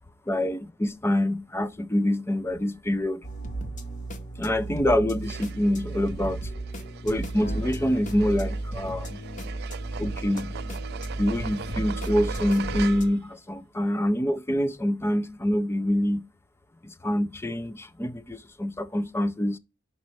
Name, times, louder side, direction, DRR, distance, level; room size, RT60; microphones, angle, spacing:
voice 1, 0.3-3.3 4.4-6.5 7.0-9.2 10.0-10.5 11.2-16.2 16.8-19.6, left 1 dB, 10° left, 0.4 m, -26 dB
sound 1, 3.2-13.1, right 1 dB, 40° left, 0.7 m, -34 dB
sound 2, 5.2-13.3, right 7 dB, 50° right, 0.4 m, -41 dB
5.3 x 4.1 x 4.7 m
head